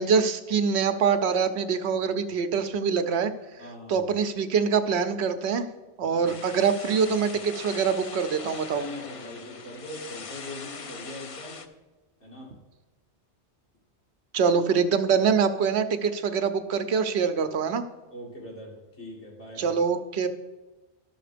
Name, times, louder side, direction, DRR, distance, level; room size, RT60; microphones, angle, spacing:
voice 1, 0.0-3.3 3.9-5.7 6.0-8.8 14.3-17.8 19.6-20.3, right 6 dB, 70° right, 9 dB, 0.9 m, -24 dB
voice 2, 3.6-4.1 6.1-6.3 8.7-11.7 12.2-12.5 18.1-19.8, left 1 dB, 75° left, -2 dB, 2.7 m, -41 dB
sound 1, 6.3-11.7, left 5 dB, 45° left, 0.5 m, -41 dB
12.5 x 5.9 x 5.0 m, 1.1 s
omnidirectional pair, 1.2 m